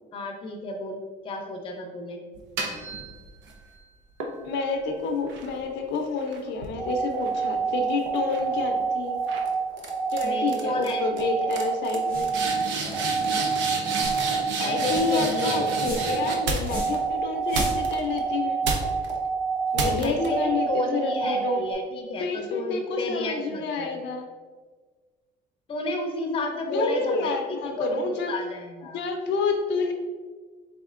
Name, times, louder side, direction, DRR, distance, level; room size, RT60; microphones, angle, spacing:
voice 1, 0.1-2.2 10.2-11.5 14.6-16.1 19.8-24.0 25.7-29.0, left 2 dB, 30° left, 1 dB, 0.5 m, -32 dB
sound 1, 2.3-3.6 4.2-7.8 8.1-8.5 9.3-9.5 9.8-10.2 10.5-10.9 11.2-11.3 11.5-17.0 17.5-18.2 18.6-19.1 19.7-20.3, right 3 dB, 80° right, 0.6 m, -32 dB
voice 2, 4.4-9.2 10.1-12.3 14.6-18.6 19.7-21.6 22.2-24.3 26.7-28.3 28.9-29.9, left 4 dB, 75° left, 3 dB, 0.5 m, -29 dB
sound 2, 6.8-21.7, right 5 dB, 25° right, 0.7 m, -28 dB
sound 3, 12.0-12.4 12.7-12.8 13.0-13.3 13.9-14.3 14.8-15.2 15.8-16.2 16.6-17.0 17.4-18.0, right 1 dB, 50° right, 1.3 m, -37 dB
4.2 x 3.5 x 2.4 m, 1.4 s
cardioid pair, 160°, 19 cm